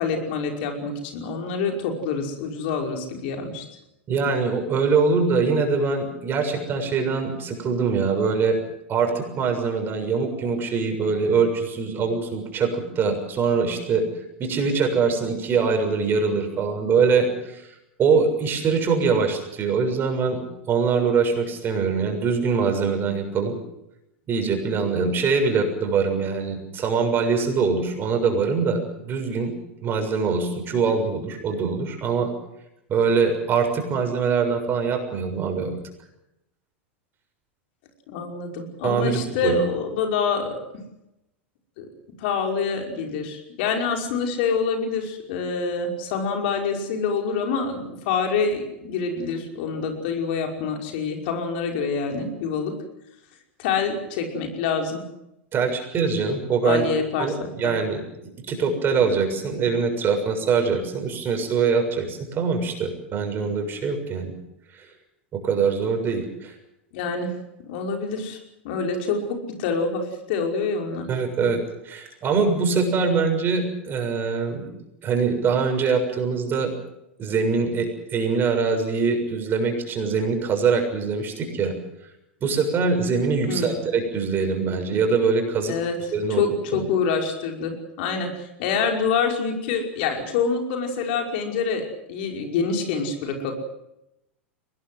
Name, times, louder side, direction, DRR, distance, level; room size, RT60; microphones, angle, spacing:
voice 1, 0.0-3.6 38.1-40.6 41.8-41.9 42.2-52.7 53.6-55.0 56.6-57.3 57.6-57.7 66.9-67.3 67.7-68.4 68.6-71.1 83.5-83.8 85.7-85.9 86.3-91.8 92.1-93.5, left 5 dB, 60° left, 3 dB, 5.5 m, -26 dB
voice 2, 4.1-8.6 8.9-14.0 14.4-17.7 18.0-20.4 20.7-23.6 24.3-29.5 29.8-32.3 32.9-35.8 38.8-39.6 55.5-56.9 57.2-58.0 58.5-64.3 64.7-64.8 65.3-66.5 71.1-71.6 71.8-74.7 75.0-76.7 77.2-81.7 82.4-85.7 86.1-86.4 86.7-86.9, right 5 dB, 35° right, 5 dB, 6.9 m, -23 dB
23.0 x 20.0 x 7.9 m, 0.87 s
hypercardioid pair, 90°, 6 cm